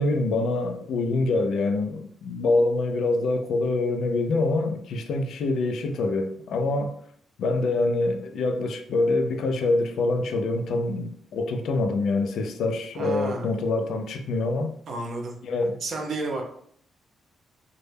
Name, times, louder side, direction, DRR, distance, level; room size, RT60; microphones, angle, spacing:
voice 1, 0.0-6.9 7.4-14.7 15.4-15.8, left 2 dB, 75° left, 0.3 m, -25 dB
voice 2, 12.9-13.6 14.9-15.4 15.8-16.4, right 3 dB, 60° right, 0.5 m, -31 dB
2.1 x 2.0 x 3.2 m
cardioid pair, 105°, 0 cm